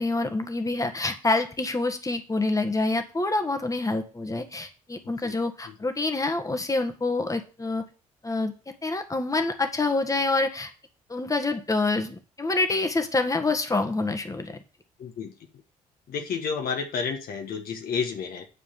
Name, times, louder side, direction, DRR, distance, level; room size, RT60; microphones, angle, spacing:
voice 1, 0.0-7.9 8.2-10.7 11.1-14.6, left 2 dB, 15° left, 7 dB, 1.7 m, -27 dB
voice 2, 15.0-15.3 16.1-18.5, left 6 dB, 50° left, 4 dB, 1.6 m, -30 dB
9.7 x 4.8 x 7.5 m, 0.36 s
figure-of-eight pair, 45°, 19 cm